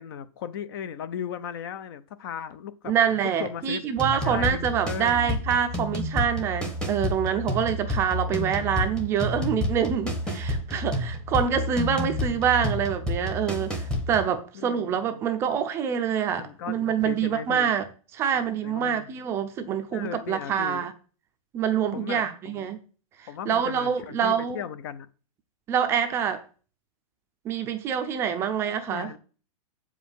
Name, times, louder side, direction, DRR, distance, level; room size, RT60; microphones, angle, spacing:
voice 1, 0.0-2.9 3.2-5.3 8.3-8.5 11.6-11.7 14.5-15.0 16.4-17.7 18.3-19.1 19.9-20.8 21.9-22.7 23.3-25.1 28.9-29.2, left 8 dB, 40° left, 0.6 m, -37 dB
voice 2, 2.9-17.9 18.1-20.9 21.5-22.8 23.2-24.6 25.7-26.4 27.4-29.1, right 8 dB, 15° right, 0.5 m, -26 dB
sound 1, 4.0-14.3, left 1 dB, 5° left, 0.9 m, -30 dB
8.1 x 4.9 x 7.1 m
supercardioid pair, 170°, 18 cm